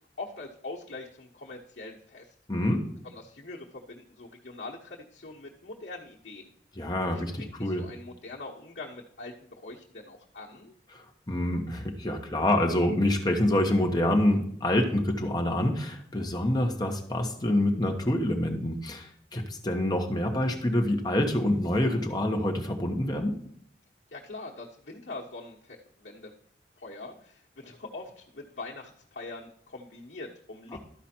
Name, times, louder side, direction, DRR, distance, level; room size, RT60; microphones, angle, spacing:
voice 1, 0.2-2.3 3.0-6.5 7.1-10.7 24.1-26.3 26.8-30.8, left 2 dB, 85° left, -4 dB, 1.1 m, -43 dB
voice 2, 2.5-2.9 6.8-7.8 10.9-23.3 30.7-30.8, left 1 dB, 25° left, 3 dB, 1.1 m, -26 dB
12.5 x 5.0 x 4.4 m, 0.67 s
head